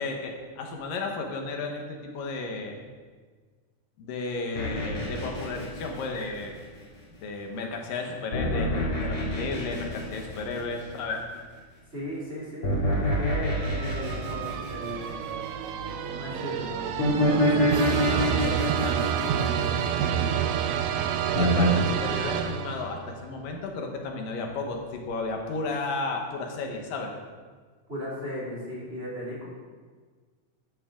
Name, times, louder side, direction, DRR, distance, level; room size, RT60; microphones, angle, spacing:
voice 1, 0.0-2.8 4.0-6.5 7.2-11.2 21.0-21.1 21.3-27.1, left 3 dB, 85° left, 2 dB, 3.1 m, -33 dB
sound 1, 4.6-6.8 8.3-11.0 12.6-15.5 17.0-20.4 21.3-21.7, left 1 dB, 45° left, 3.9 m, -27 dB
voice 2, 11.9-15.2 16.0-16.9 17.2-20.6 21.6-21.7 27.9-29.5, equal, 20° right, -6 dB, 3.3 m, -37 dB
sound 2, 13.6-23.1, right 8 dB, 75° right, 1.8 m, -29 dB
13.0 x 12.0 x 3.9 m, 1.5 s
omnidirectional pair, 3.8 m